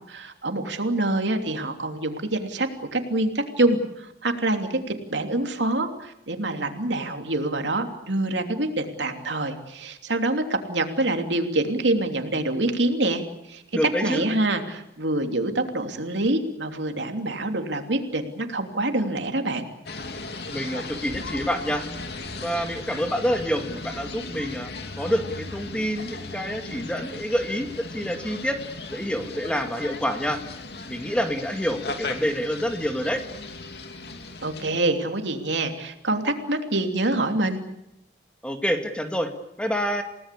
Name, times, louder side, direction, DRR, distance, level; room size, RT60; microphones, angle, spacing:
voice 1, 0.1-4.8 5.1-13.2 13.5-13.6 14.0-19.7 34.4-37.6, right 2 dB, 90° right, 5 dB, 3.1 m, -26 dB
voice 2, 13.7-14.3 20.5-21.9 22.4-24.7 25.0-28.6 28.9-30.4 30.9-33.2 38.4-39.3 39.6-40.0, equal, 5° left, 5 dB, 2.2 m, -27 dB
sound 1, 19.9-34.7, left 3 dB, 65° left, 2.7 m, -37 dB
29.0 x 18.5 x 8.5 m, 0.83 s
head